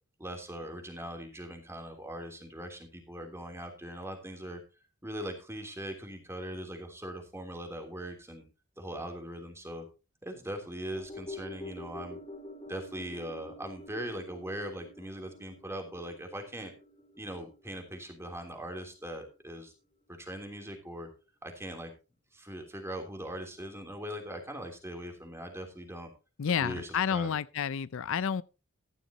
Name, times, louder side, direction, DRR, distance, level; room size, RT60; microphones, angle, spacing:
voice 1, 0.2-4.6 5.0-8.4 8.8-9.8 10.2-12.2 12.7-16.7 17.2-19.7 20.1-21.1 21.4-21.9 22.3-26.1 26.5-27.3, right 1 dB, 15° right, 3.2 m, -40 dB
sound 1, 10.9-19.4 19.7-19.8, left 2 dB, 30° left, 3.7 m, -47 dB
voice 2, 26.4-28.4, left 7 dB, 65° left, 0.5 m, -30 dB
14.5 x 11.5 x 2.9 m
head